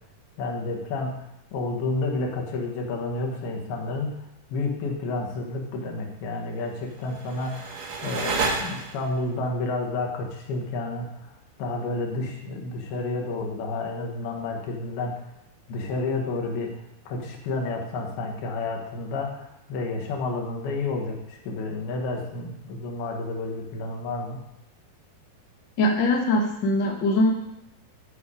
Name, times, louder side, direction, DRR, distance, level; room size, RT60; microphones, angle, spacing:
voice 1, 0.4-11.3 11.6-15.2 15.7-16.7 17.1-24.5, left 3 dB, 85° left, 1 dB, 3.3 m, -30 dB
sound 1, 6.9-9.3, right 4 dB, 60° right, 2.1 m, -31 dB
voice 2, 25.8-27.3, left 1 dB, 55° left, 0 dB, 1.2 m, -22 dB
12.5 x 5.4 x 4.9 m, 0.82 s
omnidirectional pair, 4.3 m